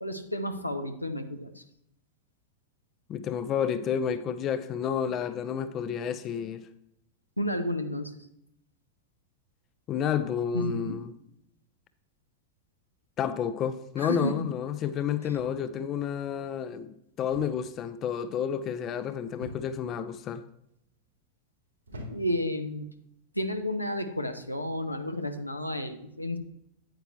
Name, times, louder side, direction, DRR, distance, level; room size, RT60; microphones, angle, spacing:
voice 1, 0.0-1.6 7.4-8.1 10.5-11.0 14.0-14.5 22.1-22.9 23.3-26.4, left 1 dB, 85° left, 0.8 m, -31 dB
voice 2, 3.1-6.7 9.9-11.1 13.2-20.4, left 8 dB, 30° left, 0.5 m, -30 dB
sound 1, 15.3-15.8 17.3-17.7 18.0-18.4 19.4-19.9 20.7-21.0 21.9-22.5 23.4-23.7, equal, 80° right, 2.9 m, -45 dB
9.0 x 8.9 x 3.1 m
figure-of-eight pair, 90°, 0 cm